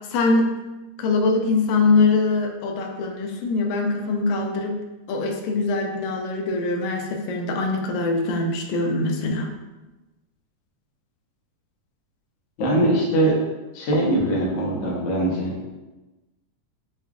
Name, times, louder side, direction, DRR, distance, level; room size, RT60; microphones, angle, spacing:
voice 1, 0.1-0.5 1.0-4.8 5.1-9.5, left 3 dB, 90° left, 3 dB, 2.0 m, -23 dB
voice 2, 12.6-13.4 13.7-15.5, right 1 dB, 70° left, -4 dB, 1.1 m, -21 dB
6.7 x 2.3 x 2.4 m, 1.1 s
omnidirectional pair, 3.3 m